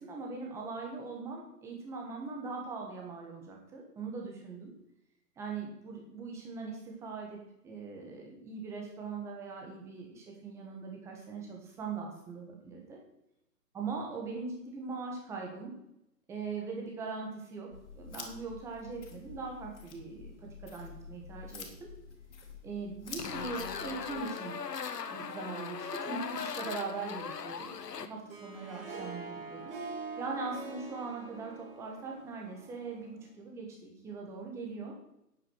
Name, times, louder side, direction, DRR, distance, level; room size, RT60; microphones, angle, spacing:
voice 1, 0.0-4.7 5.4-13.0 13.7-15.7 16.3-21.9 22.6-24.6 25.1-27.7 28.0-34.9, right 4 dB, 5° right, 0 dB, 1.3 m, -41 dB
sound 1, 17.7-24.2, left 5 dB, 45° left, 2.9 m, -48 dB
sound 2, 23.2-28.1, left 6 dB, 75° left, 1.3 m, -39 dB
Harp, 28.1-33.3, right 4 dB, 35° right, 2.8 m, -44 dB
9.2 x 8.7 x 6.3 m, 0.81 s
hypercardioid pair, 155°, 49 cm